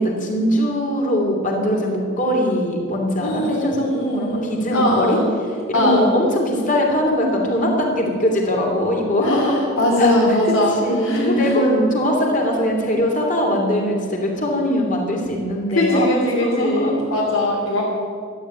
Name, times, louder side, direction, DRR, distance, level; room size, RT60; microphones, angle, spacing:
voice 1, 0.0-5.2 5.7-9.6 10.0-17.1, equal, 40° left, 0 dB, 3.1 m, -21 dB
voice 2, 3.2-5.3 5.7-6.1 9.2-11.5 15.7-17.8, left 1 dB, 85° left, -5 dB, 3.1 m, -20 dB
13.5 x 9.8 x 9.3 m, 2.3 s
head